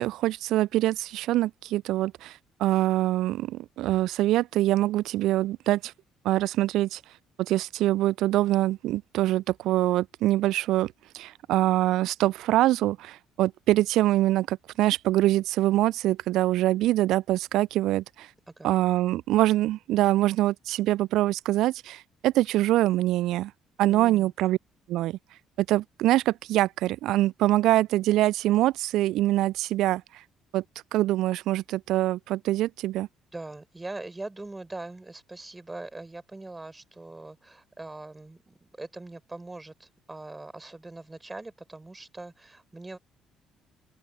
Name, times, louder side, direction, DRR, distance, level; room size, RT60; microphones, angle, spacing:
voice 1, 0.0-5.9 6.2-7.0 7.4-18.3 18.6-23.5 23.8-24.6 24.9-25.2 25.6-30.0 30.5-30.6 30.9-33.1, right 15 dB, 60° right, 0.8 m, -24 dB
voice 2, 23.9-24.3 33.3-43.0, right 2 dB, 15° right, 4.5 m, -41 dB
open air
figure-of-eight pair, 50°, 0 cm